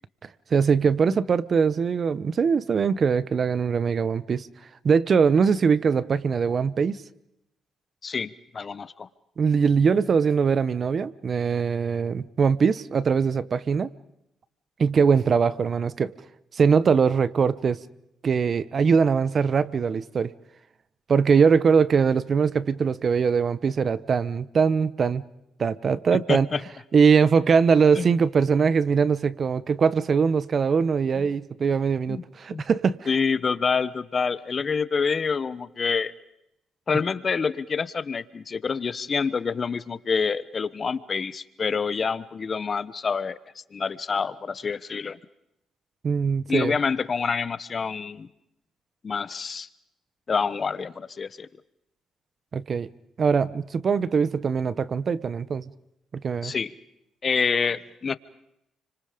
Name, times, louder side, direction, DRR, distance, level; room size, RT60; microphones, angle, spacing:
voice 1, 0.5-4.5 4.8-7.0 9.4-13.9 14.8-16.1 16.5-17.8 18.2-20.3 21.1-25.2 25.6-26.5 26.9-33.0 46.0-46.8 52.5-52.9 53.2-55.7 56.1-56.5, right 6 dB, 45° right, 17 dB, 1.0 m, -22 dB
voice 2, 8.0-9.1 26.1-26.6 28.0-28.1 31.2-31.3 32.1-32.2 32.5-32.6 33.1-36.1 36.9-43.4 43.7-45.2 46.5-48.3 49.0-49.7 50.3-51.5 56.4-56.7 57.2-58.2, left 5 dB, 40° left, 16 dB, 1.1 m, -27 dB
30.0 x 25.5 x 5.1 m, 0.82 s
cardioid pair, 90°, 0 cm